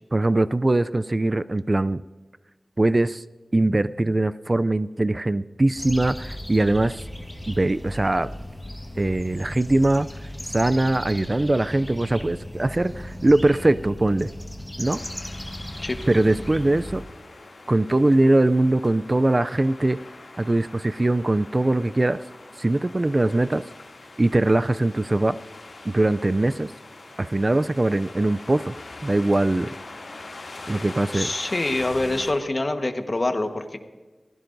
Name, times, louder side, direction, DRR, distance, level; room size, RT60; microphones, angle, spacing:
voice 1, 0.1-2.0 2.8-3.2 3.5-7.0 7.5-8.3 9.0-10.1 10.5-14.3 14.8-15.0 16.1-17.0 17.7-20.0 20.4-22.2 22.6-23.6 24.2-25.4 25.9-26.7 27.2-28.8 29.0-29.7 30.7-31.3, right 2 dB, 35° right, 15 dB, 0.3 m, -21 dB
sound 1, 5.7-17.0, left 1 dB, 10° left, 1.3 m, -36 dB
sound 2, 14.8-32.3, left 2 dB, 90° left, 2.4 m, -43 dB
voice 2, 31.1-33.8, left 2 dB, 45° left, 6 dB, 1.2 m, -25 dB
22.5 x 15.5 x 2.6 m, 1.3 s
wide cardioid pair, 65°, 0 cm